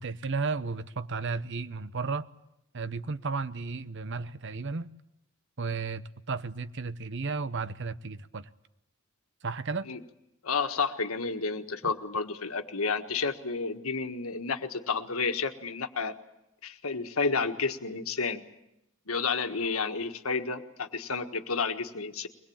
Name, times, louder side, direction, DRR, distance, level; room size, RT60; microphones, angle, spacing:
voice 1, 0.0-2.3 2.7-4.9 5.6-8.5 9.4-9.9, right 4 dB, 60° right, 14 dB, 0.9 m, -33 dB
voice 2, 10.4-16.1 16.6-18.4 19.1-22.3, left 4 dB, 90° left, 6 dB, 1.7 m, -31 dB
23.0 x 21.0 x 8.7 m, 0.85 s
head